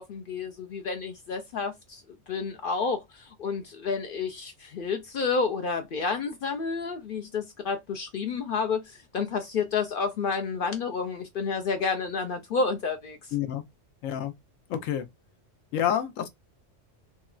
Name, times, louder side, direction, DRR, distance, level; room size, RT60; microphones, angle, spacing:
voice 1, 0.0-2.0 2.3-13.3, left 5 dB, 60° left, 0.5 m, -30 dB
voice 2, 13.3-13.6 14.0-14.3 14.7-15.1 15.7-16.3, left 10 dB, 85° left, 1.0 m, -28 dB
3.7 x 2.1 x 2.3 m
omnidirectional pair, 1.3 m